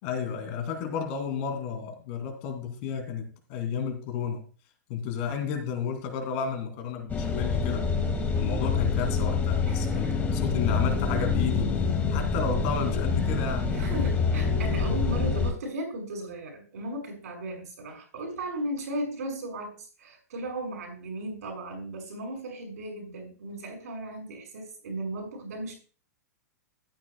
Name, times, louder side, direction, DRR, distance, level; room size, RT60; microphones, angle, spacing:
voice 1, 0.0-4.5 4.9-7.9 8.4-13.8, left 7 dB, 45° left, 5 dB, 2.8 m, -32 dB
sound 1, 7.1-15.5, left 4 dB, 20° left, 2.2 m, -26 dB
voice 2, 9.7-10.2 13.7-25.7, right 1 dB, 65° right, 1 dB, 5.8 m, -36 dB
14.5 x 10.0 x 2.3 m, 0.37 s
figure-of-eight pair, 110°, 9 cm